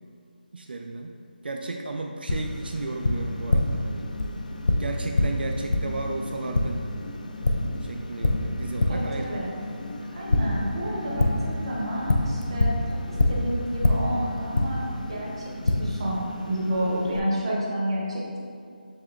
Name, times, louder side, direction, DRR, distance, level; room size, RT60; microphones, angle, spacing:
voice 1, 0.5-1.2 1.4-4.1 4.8-6.8 7.8-9.3, right 3 dB, 75° right, 3 dB, 0.3 m, -34 dB
Tap, 2.3-17.2, left 2 dB, 50° left, 0.3 m, -27 dB
voice 2, 8.9-9.6 10.1-18.4, right 1 dB, 30° right, -4 dB, 0.8 m, -30 dB
7.1 x 2.9 x 2.4 m, 2.3 s
figure-of-eight pair, 175°, 5 cm